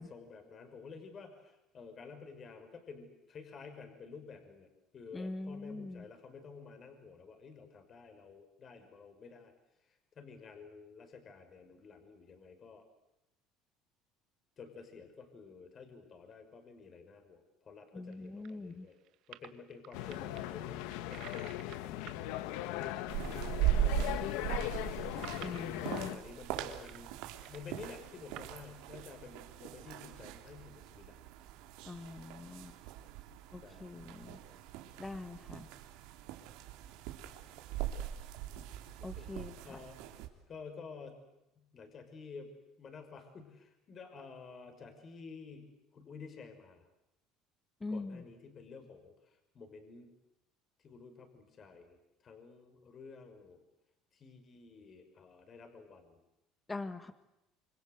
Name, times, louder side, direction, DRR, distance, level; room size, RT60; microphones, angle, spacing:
voice 1, 0.0-4.7 4.9-9.5 9.8-12.8 14.6-19.0 19.3-23.0 23.5-24.6 25.8-27.1 27.5-31.2 33.6-34.2 39.0-39.3 39.6-40.1 40.5-41.2 41.6-42.5 42.8-46.9 47.9-50.1 50.8-52.0 52.2-53.6 54.1-56.2, left 5 dB, 35° left, 7 dB, 5.9 m, -51 dB
voice 2, 5.1-6.0 17.9-18.9 25.4-26.2 31.8-32.7 33.5-34.4 35.0-35.7 39.0-39.8 47.8-48.2 56.7-57.1, left 2 dB, 15° left, 10 dB, 1.4 m, -43 dB
sound 1, 18.1-23.4 23.7-23.8 24.1-28.5, right 14 dB, 65° right, 1.5 m, -54 dB
sound 2, 19.9-26.2, left 14 dB, 85° left, 1.3 m, -39 dB
sound 3, 23.1-40.3, right 11 dB, 80° right, 3.5 m, -39 dB
28.0 x 25.5 x 8.1 m, 0.88 s
cardioid pair, 125°, 0 cm